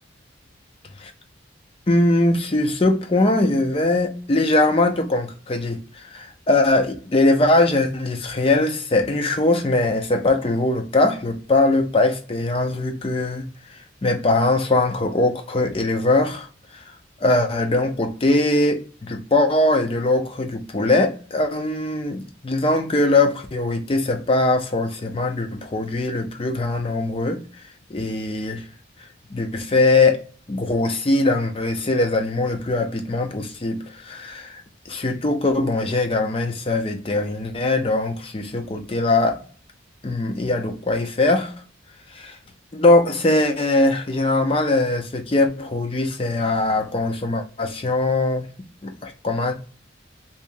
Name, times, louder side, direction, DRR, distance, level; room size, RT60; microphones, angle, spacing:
voice 1, 1.9-13.4 14.0-16.5 17.2-27.4 27.9-28.6 29.3-30.2 30.5-34.6 34.9-39.4 40.0-41.5 42.1-42.4 42.7-48.5 48.8-49.5, left 2 dB, 30° left, 0.5 m, -21 dB
2.8 x 2.7 x 3.4 m
head